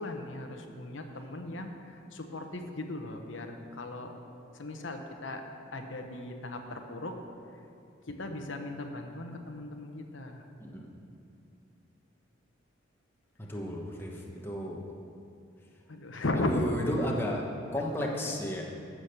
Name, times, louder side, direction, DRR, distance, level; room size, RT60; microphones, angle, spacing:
voice 1, 0.0-4.1 4.5-5.4 5.7-7.2 8.1-10.4 15.9-16.6 18.3-18.4, left 2 dB, 75° left, 4 dB, 1.0 m, -37 dB
voice 2, 10.6-10.9 13.4-14.8 16.5-17.4 17.7-18.6, equal, 10° left, -2 dB, 1.2 m, -33 dB
14.5 x 6.3 x 6.7 m, 2.5 s
head